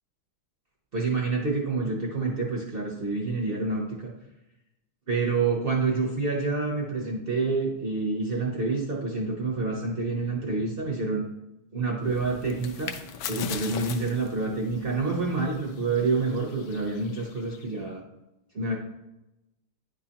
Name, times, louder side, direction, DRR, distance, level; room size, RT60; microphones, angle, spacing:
voice 1, 0.9-4.1 5.1-11.2 11.7-12.9 13.3-18.0 18.5-18.7, right 3 dB, 65° right, -1 dB, 0.5 m, -28 dB
sound 1, 12.0-17.8, left 6 dB, 75° left, 1.0 m, -40 dB
9.8 x 3.8 x 2.8 m, 0.94 s
omnidirectional pair, 2.2 m